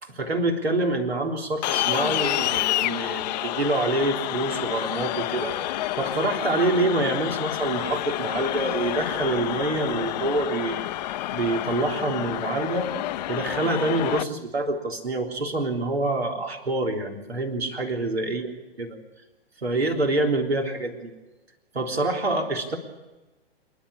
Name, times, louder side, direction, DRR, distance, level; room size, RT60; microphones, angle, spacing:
voice 1, 0.0-5.5 6.0-12.9 13.3-18.5 18.8-19.0 19.6-21.1 21.7-22.8, right 2 dB, 80° right, 2 dB, 3.6 m, -26 dB
sound 1, 1.6-14.2, left 14 dB, 45° left, 0.7 m, -29 dB
27.0 x 11.5 x 9.8 m, 1.1 s
figure-of-eight pair, 110°, 31 cm